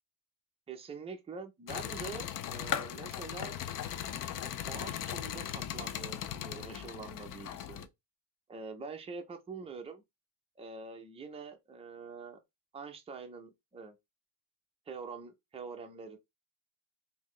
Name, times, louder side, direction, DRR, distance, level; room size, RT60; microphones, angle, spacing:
voice 1, 0.7-3.6 4.7-7.9 8.5-10.0 10.6-12.4 12.7-14.0 14.9-16.2, right 4 dB, 15° right, 0.5 m, -45 dB
sound 1, 1.7-7.9, left 10 dB, 45° left, 0.4 m, -38 dB
3.9 x 2.7 x 3.1 m
cardioid pair, 160°, 48 cm